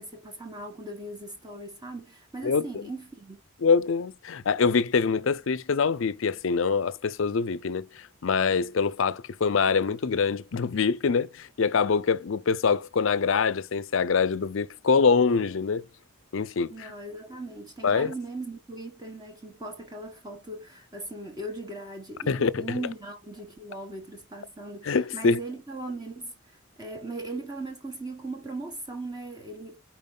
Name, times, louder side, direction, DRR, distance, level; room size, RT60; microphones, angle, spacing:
voice 1, 0.0-3.4 16.7-29.8, right 2 dB, 20° right, 1.3 m, -39 dB
voice 2, 2.4-2.9 3.6-15.8 16.3-16.9 17.8-18.1 22.3-22.6 24.8-25.4, left 5 dB, 65° left, 0.5 m, -24 dB
5.4 x 4.5 x 3.8 m
head